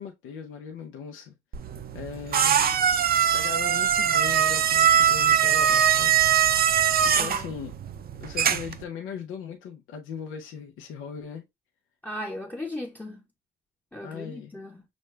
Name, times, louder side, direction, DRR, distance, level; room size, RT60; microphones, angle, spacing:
voice 1, 0.0-1.3 1.6-2.9 3.3-6.1 6.6-7.8 8.2-11.4 14.0-14.6, left 6 dB, 90° left, 0.7 m, -39 dB
sound 1, 1.5-8.8, right 9 dB, 50° right, 0.6 m, -22 dB
voice 2, 7.1-7.4 12.0-13.2 13.9-14.8, left 1 dB, 10° left, 0.7 m, -37 dB
6.2 x 2.2 x 3.2 m
cardioid pair, 90°, 20 cm